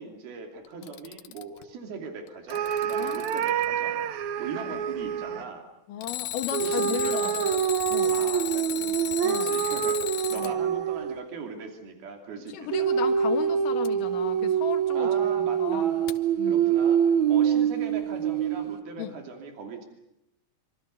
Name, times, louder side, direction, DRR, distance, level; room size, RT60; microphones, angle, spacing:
voice 1, 0.0-4.0 4.4-5.7 6.6-7.6 8.1-10.0 10.3-12.7 14.9-16.1 16.4-19.9, right 4 dB, 90° right, 4.7 m, -39 dB
Alarm, 0.7-1.6 2.3-3.7 6.0-10.5 13.8-13.9 16.1-16.2, left 14 dB, 90° left, 3.1 m, -35 dB
sound 1, 2.5-5.5 6.5-11.3 12.7-18.8, right 8 dB, 65° right, 2.1 m, -26 dB
voice 2, 3.0-3.4 4.7-4.8 5.9-7.4 7.9-8.2 9.2-9.6 10.3-10.6 12.5-15.1 15.4-15.9 16.4-16.7 19.0-19.2, left 9 dB, 65° left, 3.0 m, -35 dB
27.0 x 26.0 x 6.9 m
omnidirectional pair, 4.2 m